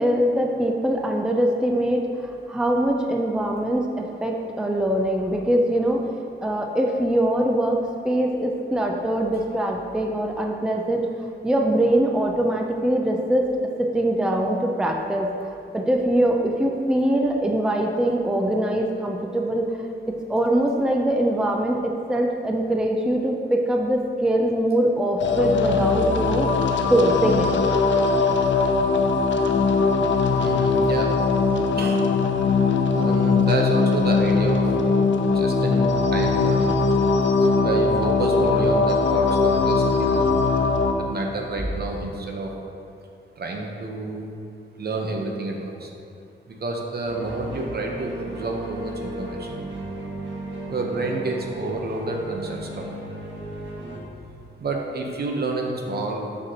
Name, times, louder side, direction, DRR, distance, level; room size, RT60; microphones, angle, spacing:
voice 1, 0.0-6.1 6.4-11.1 11.4-19.7 20.1-26.5 26.9-27.5, right 1 dB, 5° right, 1 dB, 0.5 m, -23 dB
sound 1, 25.2-40.9, left 4 dB, 70° left, 0.5 m, -20 dB
voice 2, 30.3-31.1 31.7-32.0 33.0-34.7 35.3-36.7 37.6-40.4 41.0-42.5 43.4-44.3 44.8-45.9 46.5-49.5 50.7-52.9 54.6-56.3, right 2 dB, 55° right, 1 dB, 0.8 m, -29 dB
sound 2, 47.1-54.0, right 1 dB, 70° right, 1.1 m, -35 dB
6.3 x 5.8 x 2.9 m, 2.4 s
cardioid pair, 80°, 20 cm